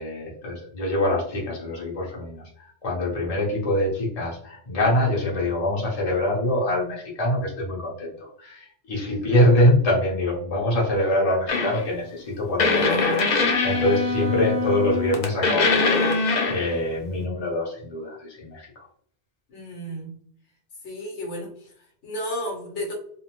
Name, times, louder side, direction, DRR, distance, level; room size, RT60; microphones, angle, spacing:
voice 1, 0.0-18.7, left 1 dB, 35° left, -4 dB, 0.9 m, -24 dB
voice 2, 9.0-9.3 12.8-13.2 19.5-20.2 20.8-22.9, equal, 80° left, 0 dB, 1.1 m, -34 dB
sound 1, 11.5-11.9 12.6-16.8, left 3 dB, 55° left, 0.5 m, -22 dB
2.7 x 2.0 x 2.9 m, 0.62 s
omnidirectional pair, 1.2 m